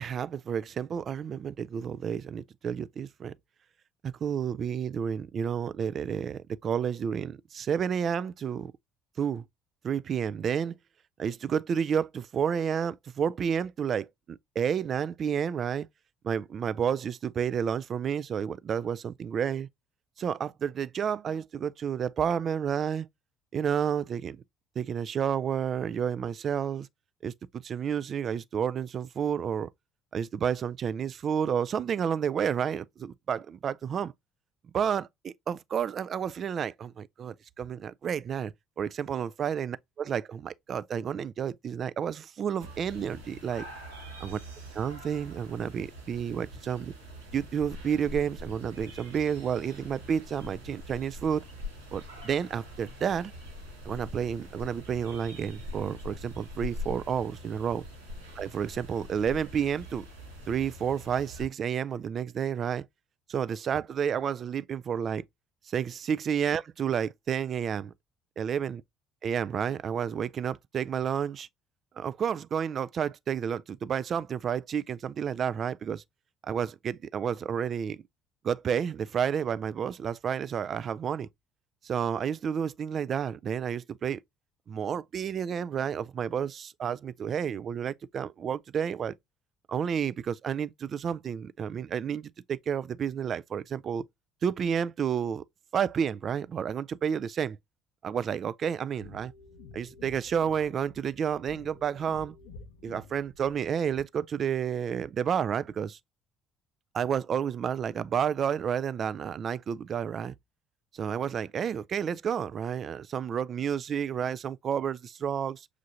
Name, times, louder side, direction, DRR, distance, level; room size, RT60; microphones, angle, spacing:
voice 1, 0.0-3.3 4.0-8.7 9.2-9.4 9.8-10.8 11.2-15.9 16.2-19.7 20.2-23.1 23.5-24.4 24.8-26.9 27.2-29.7 30.1-34.1 34.7-43.7 44.2-44.4 44.7-46.9 47.3-51.4 51.9-53.3 53.8-57.8 58.4-60.0 60.5-62.8 63.3-65.2 65.7-67.9 68.4-68.8 69.2-71.5 72.0-76.0 76.4-78.0 78.4-81.3 81.8-84.2 84.7-89.1 89.7-94.0 94.4-95.4 95.7-97.6 98.0-99.3 99.7-102.3 102.8-106.0 106.9-110.3 110.9-115.7, right 8 dB, 45° right, 0.3 m, -30 dB
sound 1, 42.6-61.4, left 1 dB, 90° right, 1.4 m, -43 dB
sound 2, 99.0-104.0, left 4 dB, 75° left, 0.6 m, -51 dB
6.5 x 2.5 x 2.6 m
figure-of-eight pair, 55°, 0 cm